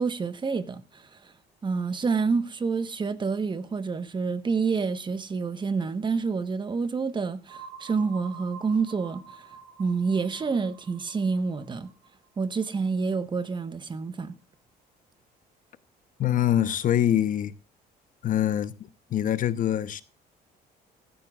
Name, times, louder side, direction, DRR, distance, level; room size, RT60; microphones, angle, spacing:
voice 1, 0.0-1.3 1.6-9.4 9.8-11.9 12.4-14.3, right 4 dB, 25° right, 1.1 m, -28 dB
sound 1, 7.5-13.2, right 6 dB, 70° right, 3.0 m, -48 dB
voice 2, 16.2-17.5 18.2-18.7 19.1-20.0, left 11 dB, 50° left, 0.9 m, -24 dB
15.0 x 14.5 x 2.4 m
cardioid pair, 110°, 17 cm